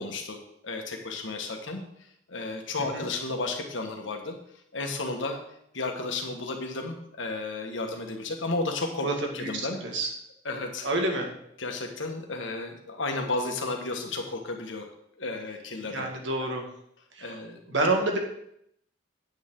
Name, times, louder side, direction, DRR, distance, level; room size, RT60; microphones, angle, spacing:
voice 1, 0.0-4.4 4.7-5.4 5.7-9.1 9.3-9.8 10.4-10.9 11.6-14.9 15.2-16.1 17.2-17.9, left 3 dB, 75° left, 3 dB, 1.7 m, -33 dB
voice 2, 10.8-11.3 15.9-16.7 17.2-17.3 17.7-18.2, right 2 dB, 70° right, 2 dB, 1.9 m, -27 dB
9.3 x 9.1 x 3.8 m, 0.73 s
head